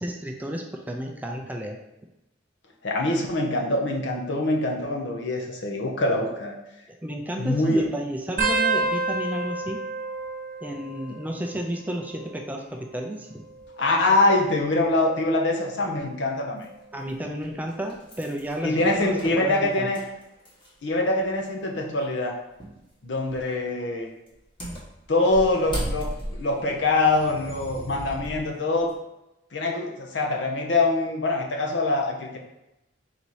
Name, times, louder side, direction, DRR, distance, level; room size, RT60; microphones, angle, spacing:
voice 1, 0.0-1.8 7.0-9.8 10.6-13.4 16.9-19.9, right 1 dB, 10° right, 1 dB, 0.4 m, -32 dB
voice 2, 2.8-6.5 7.4-7.8 13.8-16.7 18.6-20.0 20.8-22.4 23.0-24.1 25.1-28.9 29.5-32.4, left 2 dB, 70° left, 1 dB, 0.8 m, -24 dB
sound 1, 8.4-11.6 11.8-12.4 13.4-14.9 15.5-15.9 17.1-17.4 18.9-19.0, right 3 dB, 45° right, 0.9 m, -30 dB
sound 2, 16.6-16.7 17.4-20.9 21.2-21.3 22.6-22.9 23.3-23.6 24.3-28.3 28.7-28.9, equal, 25° left, 1.2 m, -36 dB
sound 3, 25.5-28.4, equal, 55° left, 1.2 m, -43 dB
4.0 x 2.8 x 4.7 m, 0.92 s
head